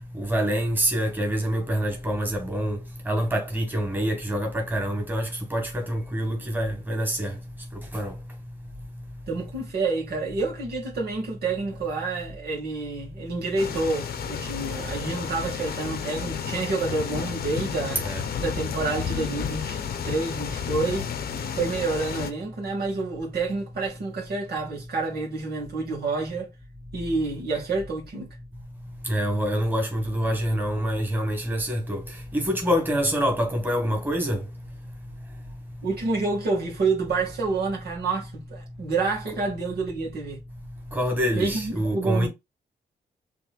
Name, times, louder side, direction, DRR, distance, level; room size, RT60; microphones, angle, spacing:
voice 1, 0.1-2.8 3.1-7.3 7.9-8.1 18.0-18.2 29.1-32.0 32.3-34.4 40.9-42.3, equal, 10° right, 1.6 m, -26 dB
voice 2, 9.3-18.0 18.4-21.1 21.5-26.5 26.9-28.3 35.8-40.4 41.3-42.3, right 3 dB, 75° right, 2.2 m, -28 dB
sound 1, 13.6-22.3, left 7 dB, 70° left, 0.8 m, -32 dB
6.1 x 3.2 x 2.5 m
cardioid pair, 105°, 16 cm